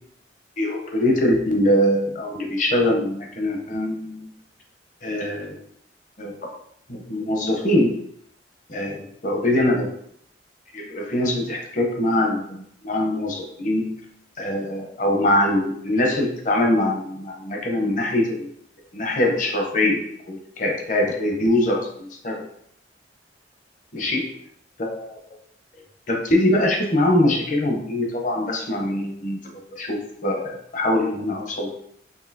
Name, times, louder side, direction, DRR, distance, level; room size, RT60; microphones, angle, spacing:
voice 1, 0.6-4.3 5.0-5.6 6.2-6.3 6.9-7.9 8.7-9.9 10.7-13.9 14.4-18.5 18.9-20.0 20.3-22.4 23.9-24.3 24.8-25.1 26.1-31.7, left 1 dB, 45° left, 1 dB, 0.8 m, -23 dB
5.3 x 2.7 x 2.7 m, 0.69 s
head